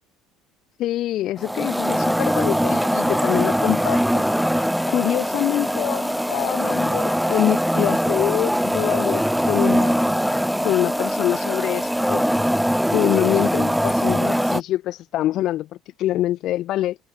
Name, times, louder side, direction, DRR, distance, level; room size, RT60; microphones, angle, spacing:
voice 1, 0.8-4.2 4.9-10.3 10.6-12.2 12.9-15.7 16.0-17.0, left 14 dB, 55° left, 2.9 m, -25 dB
sound 1, 1.4-14.6, equal, ahead, 6.4 m, -22 dB
cardioid pair, 130°, 0 cm